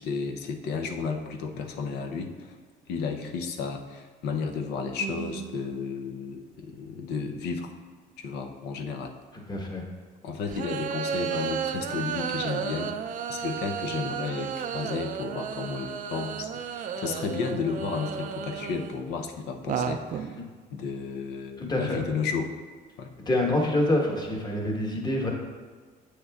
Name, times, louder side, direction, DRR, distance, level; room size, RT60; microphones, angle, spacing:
voice 1, 0.0-2.5 2.9-7.7 8.2-9.1 10.2-20.4 20.7-22.5 23.0-23.1, left 5 dB, 80° left, 5 dB, 0.7 m, -33 dB
sound 1, 5.0-6.0 6.8-6.9 10.5-19.1 19.6-20.4, right 7 dB, 50° right, 0.4 m, -33 dB
voice 2, 9.5-9.8 21.6-22.0 23.3-25.3, left 1 dB, 25° left, 0 dB, 1.2 m, -26 dB
8.0 x 6.4 x 2.4 m, 1.5 s
cardioid pair, 110°, 17 cm